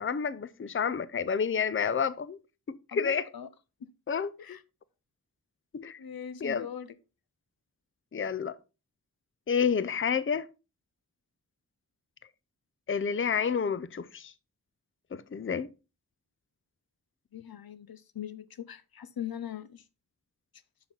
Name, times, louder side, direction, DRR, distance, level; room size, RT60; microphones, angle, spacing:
voice 1, 0.0-2.4 2.7-3.3 4.1-4.6 5.7-6.0 6.4-6.7 8.1-8.6 9.5-10.5 12.9-14.3 15.1-15.7, left 6 dB, 35° left, 0.5 m, -29 dB
voice 2, 2.9-3.5 3.8-3.9 4.4-4.6 6.0-7.0 17.3-19.8, left 9 dB, 85° left, 0.6 m, -41 dB
6.8 x 5.7 x 3.9 m
wide cardioid pair, 45°, 35 cm